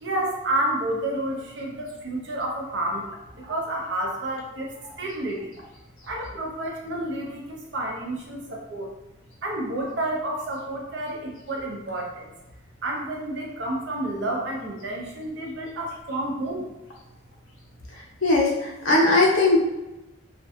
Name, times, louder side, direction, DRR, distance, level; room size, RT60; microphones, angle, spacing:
voice 1, 0.0-5.5 6.1-8.9 9.4-12.3 12.8-16.7, right 1 dB, 65° right, -1 dB, 0.6 m, -30 dB
voice 2, 18.2-19.6, left 2 dB, 80° left, -4 dB, 0.6 m, -19 dB
2.4 x 2.2 x 2.7 m, 0.98 s
head